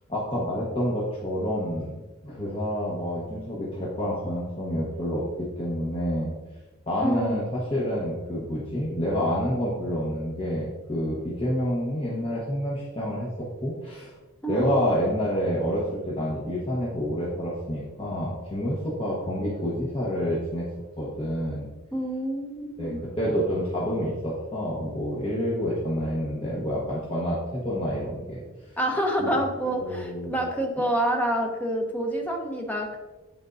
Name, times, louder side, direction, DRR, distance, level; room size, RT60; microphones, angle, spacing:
voice 1, 0.1-6.3 6.9-14.1 14.5-20.7 21.0-21.7 22.8-28.4 29.2-29.3 29.7-30.3, equal, 25° left, -6 dB, 1.0 m, -28 dB
voice 2, 7.0-7.4 14.4-14.7 21.9-23.0 28.8-33.0, right 1 dB, 10° left, 1 dB, 0.8 m, -27 dB
9.2 x 4.5 x 2.6 m, 1.2 s
head